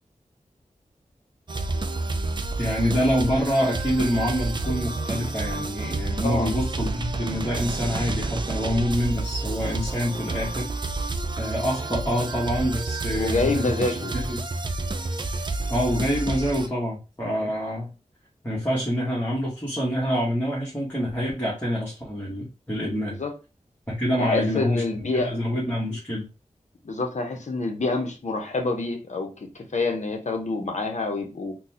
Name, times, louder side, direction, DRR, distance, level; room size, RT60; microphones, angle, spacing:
sound 1, 1.5-16.7, right 3 dB, 35° right, 0.4 m, -29 dB
voice 1, 2.6-10.7 11.4-14.4 15.7-17.9 18.4-23.2 23.9-26.3, equal, 15° left, 1.2 m, -26 dB
voice 2, 6.2-6.6 13.2-14.1 17.4-17.5 23.2-23.3 24.2-25.4 26.8-31.6, left 3 dB, 65° left, 0.8 m, -27 dB
4.0 x 2.3 x 2.7 m
wide cardioid pair, 75°, 13 cm